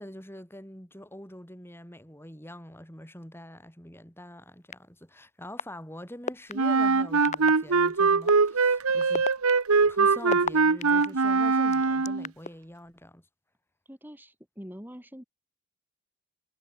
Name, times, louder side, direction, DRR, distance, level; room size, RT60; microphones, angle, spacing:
voice 1, 0.0-9.3 9.9-13.3, left 1 dB, 10° left, 7.8 m, -44 dB
sound 1, 4.7-4.8 5.6-5.7 6.3-6.5 7.2-7.5 8.3-8.4 9.0-11.1 11.7-12.5, left 4 dB, 35° left, 1.6 m, -31 dB
Wind instrument woodwind instrument, 6.5-12.3, right 4 dB, 90° right, 1.1 m, -22 dB
voice 2, 13.9-15.2, equal, 10° right, 5.5 m, -44 dB
head